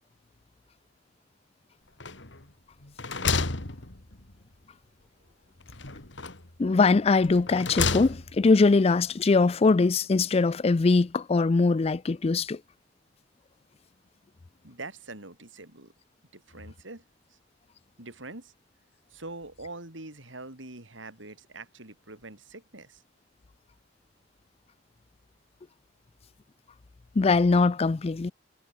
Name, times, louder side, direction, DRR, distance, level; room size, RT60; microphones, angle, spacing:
sound 1, 2.0-2.5 2.8-4.4 5.7-6.6 7.2-8.5, left 4 dB, 70° left, 2.7 m, -31 dB
voice 1, 6.6-12.6 27.2-28.3, left 3 dB, 30° left, 0.4 m, -22 dB
voice 2, 14.6-15.9 16.3-17.0 17.3-17.4 18.0-18.5 19.1-23.0, right 2 dB, 90° right, 4.9 m, -44 dB
head